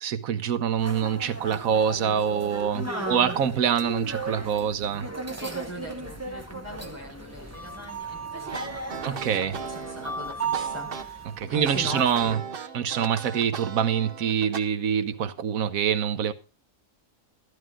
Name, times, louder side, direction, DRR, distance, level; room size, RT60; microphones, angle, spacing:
voice 1, 0.0-5.1 9.0-9.6 11.3-12.4 12.7-16.3, right 8 dB, 80° right, 1.3 m, -25 dB
sound 1, 0.8-12.3, right 3 dB, 15° right, 0.9 m, -36 dB
voice 2, 2.7-3.4 5.4-12.4, equal, 10° left, 4.7 m, -39 dB
sound 2, 8.4-14.6, right 5 dB, 45° right, 0.9 m, -37 dB
12.5 x 11.5 x 3.6 m
omnidirectional pair, 1.5 m